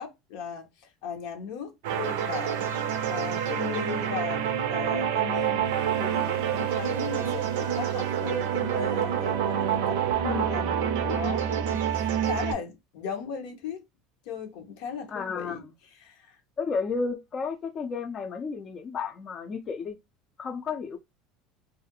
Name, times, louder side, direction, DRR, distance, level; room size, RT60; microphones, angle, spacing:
voice 1, 0.0-5.6 6.0-10.0 10.3-13.8 14.2-15.6 16.0-16.4, left 6 dB, 70° left, 0.7 m, -37 dB
sound 1, 1.8-12.5, right 9 dB, 80° right, 0.4 m, -27 dB
voice 2, 10.2-10.7 15.1-15.7 16.6-20.0 20.4-21.0, left 5 dB, 35° left, 0.4 m, -32 dB
2.3 x 2.1 x 2.7 m
supercardioid pair, 120°, 0 cm